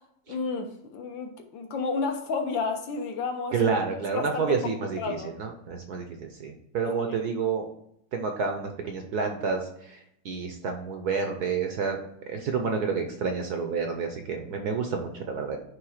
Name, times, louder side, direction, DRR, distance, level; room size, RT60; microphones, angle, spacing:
voice 1, 0.3-3.6 4.1-5.3 6.8-7.2, left 4 dB, 65° left, 5 dB, 1.6 m, -31 dB
voice 2, 3.5-7.7 8.1-12.0 12.3-15.6, right 5 dB, 60° right, 4 dB, 1.0 m, -29 dB
9.6 x 3.5 x 4.9 m, 0.75 s
omnidirectional pair, 2.4 m